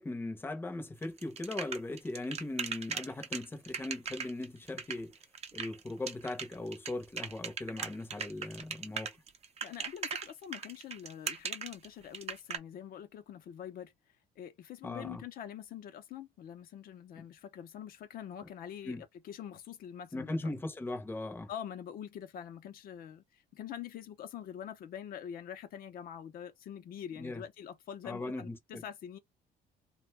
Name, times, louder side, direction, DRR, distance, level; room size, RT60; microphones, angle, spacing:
voice 1, 0.0-5.1 5.5-9.1 14.8-15.2 17.2-17.3 18.8-19.0 20.1-21.5 27.2-27.4 28.0-28.8, left 2 dB, 15° left, 0.7 m, -39 dB
sound 1, 1.0-12.6, right 6 dB, 40° right, 0.6 m, -39 dB
voice 2, 9.6-13.9 14.4-20.3 21.5-29.2, left 9 dB, 60° left, 0.6 m, -45 dB
2.6 x 2.2 x 3.2 m
cardioid pair, 110°, 17 cm